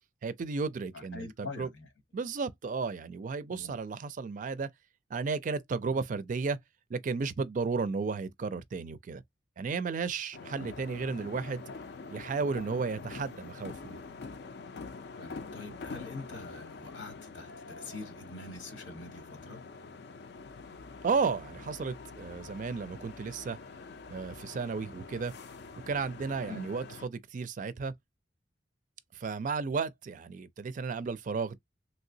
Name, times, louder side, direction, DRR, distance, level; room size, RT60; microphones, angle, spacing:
voice 1, 0.2-1.7 2.1-4.7 5.1-6.6 6.9-9.2 9.6-11.6 12.1-14.0 21.0-23.6 24.1-25.3 25.9-27.9 29.1-31.6, right 4 dB, 45° right, 0.4 m, -33 dB
voice 2, 0.9-1.9 3.5-3.8 15.1-19.6 26.5-26.7, left 3 dB, 90° left, 1.1 m, -44 dB
sound 1, 10.3-27.1, left 4 dB, 60° left, 0.4 m, -46 dB
3.1 x 2.8 x 2.7 m
head